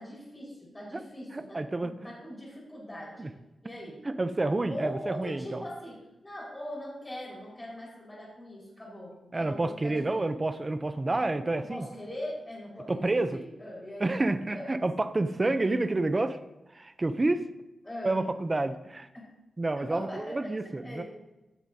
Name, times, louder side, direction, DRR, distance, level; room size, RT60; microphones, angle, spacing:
voice 1, 0.0-3.3 3.6-4.0 4.7-6.0 6.2-10.2 11.6-14.1 14.5-14.6 17.8-18.2 19.7-21.0, left 1 dB, 15° left, -4 dB, 4.8 m, -41 dB
voice 2, 1.3-1.9 3.2-3.3 4.0-5.6 9.3-11.9 12.9-13.4 14.0-16.4 16.7-17.4 18.0-19.1 19.6-21.0, right 2 dB, 20° right, 9 dB, 0.5 m, -29 dB
16.0 x 10.5 x 2.7 m, 0.98 s
wide cardioid pair, 170°, 0 cm